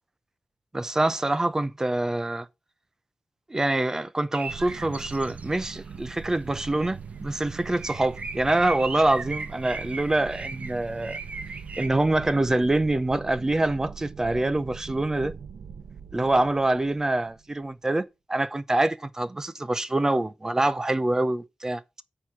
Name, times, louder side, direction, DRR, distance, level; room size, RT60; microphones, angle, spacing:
voice 1, 0.7-2.5 3.5-11.2 11.8-15.3 16.1-18.0 18.3-21.8, right 2 dB, 20° right, 0.7 m, -25 dB
sound 1, 4.3-5.9 6.1-6.2 6.6-6.9 7.1-11.9, right 3 dB, 50° right, 1.1 m, -38 dB
sound 2, 4.5-17.7, right 6 dB, 75° right, 0.7 m, -41 dB
8.6 x 4.7 x 7.3 m
wide cardioid pair, 165°, 3 cm